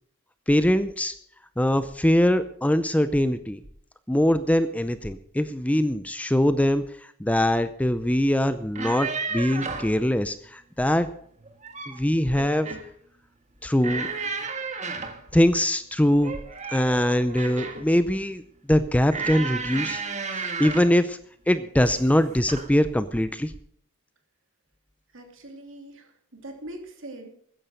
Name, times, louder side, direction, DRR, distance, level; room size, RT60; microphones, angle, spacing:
voice 1, 0.5-1.1 1.6-3.6 4.1-11.1 11.9-12.7 13.6-14.1 15.3-16.3 16.7-18.4 18.7-20.0 20.6-21.2 21.5-23.5, left 1 dB, 5° left, 12 dB, 0.5 m, -22 dB
sound 1, 8.6-10.0 11.4-12.0 12.4-12.9 13.8-15.2 16.2-17.9 19.1-21.0 21.8-22.1 22.5-22.7, right 4 dB, 35° right, 1.6 m, -33 dB
voice 2, 25.1-27.3, right 1 dB, 60° right, 3 dB, 2.9 m, -42 dB
14.0 x 10.0 x 6.5 m, 0.63 s
head